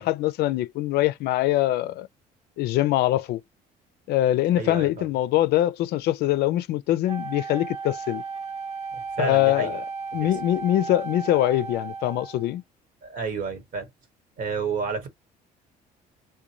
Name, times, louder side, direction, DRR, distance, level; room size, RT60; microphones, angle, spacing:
voice 1, 0.0-2.1 2.6-3.4 4.1-8.2 9.2-9.8 10.1-12.6, left 14 dB, 75° left, 0.4 m, -23 dB
voice 2, 4.6-5.0 8.9-9.8 10.1-10.3 13.0-13.9 14.4-15.1, right 5 dB, 55° right, 1.3 m, -30 dB
Wind instrument woodwind instrument, 7.1-12.5, right 4 dB, 40° right, 0.6 m, -35 dB
2.5 x 2.2 x 2.9 m
cardioid pair, 110°, 17 cm